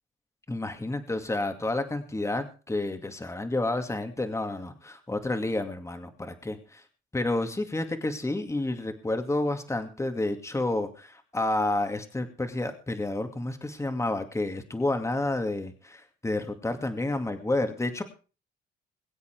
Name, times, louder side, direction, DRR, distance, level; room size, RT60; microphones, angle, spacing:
voice 1, 0.5-6.8 7.1-18.0, left 2 dB, 15° left, 7 dB, 2.3 m, -30 dB
22.0 x 8.1 x 4.6 m, 0.36 s
cardioid pair, 90°, 20 cm